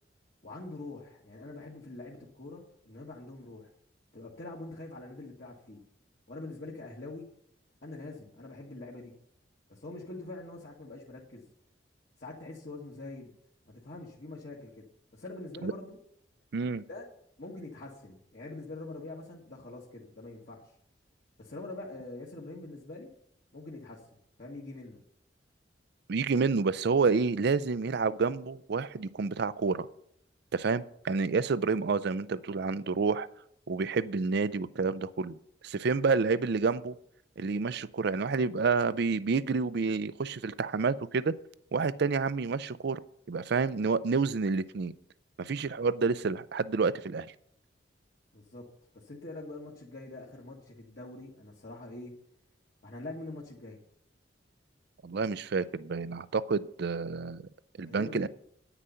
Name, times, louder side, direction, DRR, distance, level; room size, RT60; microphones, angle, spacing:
voice 1, 0.4-3.7 4.1-5.8 6.3-7.3 7.8-9.1 9.7-11.5 12.2-13.3 13.7-14.9 15.1-16.0 16.6-17.1 17.4-20.7 21.4-23.1 23.5-24.0 24.4-25.0 48.3-48.7 48.9-52.1 52.8-53.8 57.9-58.3, left 2 dB, 55° left, -5 dB, 1.7 m, -44 dB
voice 2, 16.5-16.8 26.1-29.9 30.5-33.3 33.7-35.4 35.6-37.0 37.4-41.3 41.7-43.0 43.3-44.9 45.4-47.3 55.0-57.4 57.8-58.3, right 4 dB, 60° right, 16 dB, 0.5 m, -29 dB
10.0 x 9.1 x 5.6 m, 0.70 s
head